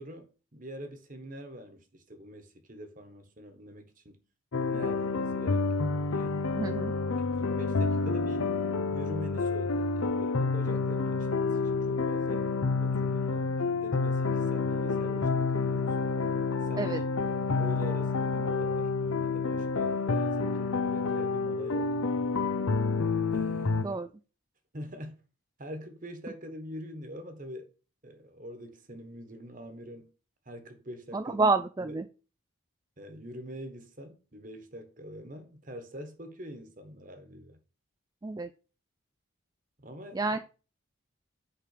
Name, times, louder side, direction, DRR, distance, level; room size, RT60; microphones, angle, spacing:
voice 1, 0.0-4.2 4.7-5.7 6.1-6.4 7.2-8.6 8.9-12.5 12.8-16.0 16.6-17.1 17.6-22.0 23.3-24.0 24.7-25.2 25.6-27.7 28.0-30.1 30.4-31.4 31.8-32.0 33.0-37.6 39.8-40.3, equal, 40° right, 1.4 m, -44 dB
sound 1, 4.5-23.9, left 4 dB, 85° left, 0.7 m, -29 dB
voice 2, 6.6-6.9 16.8-17.0 23.8-24.1 31.1-32.1 38.2-38.5 40.1-40.4, right 3 dB, 20° right, 0.3 m, -29 dB
5.7 x 4.9 x 6.6 m
head